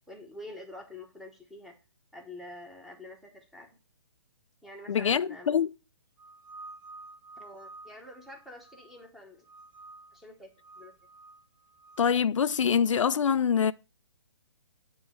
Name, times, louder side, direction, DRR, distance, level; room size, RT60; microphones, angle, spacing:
voice 1, 0.1-1.8 2.1-3.8 4.6-5.6 7.4-9.4 10.1-10.5 10.8-10.9, left 2 dB, ahead, 1.0 m, -47 dB
voice 2, 4.9-5.7 12.0-13.7, left 7 dB, 85° left, 0.4 m, -25 dB
sound 1, 6.2-9.1 9.5-10.2 10.6-12.1, right 3 dB, 45° right, 1.5 m, -50 dB
8.7 x 3.0 x 6.4 m
hypercardioid pair, 150°, 16 cm